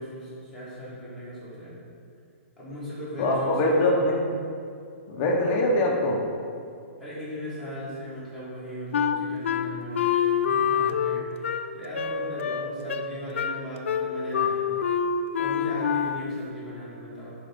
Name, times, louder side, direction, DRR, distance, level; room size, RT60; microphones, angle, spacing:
voice 1, 0.0-1.7 2.6-3.7 7.0-14.8 15.3-17.3, equal, 5° right, -11 dB, 1.7 m, -38 dB
voice 2, 3.2-4.2 5.1-6.2, left 1 dB, 20° left, -1 dB, 0.8 m, -23 dB
Wind instrument woodwind instrument, 8.9-16.4, left 7 dB, 65° left, 0.4 m, -26 dB
5.4 x 5.0 x 5.3 m, 2.3 s
hypercardioid pair, 175°, 7 cm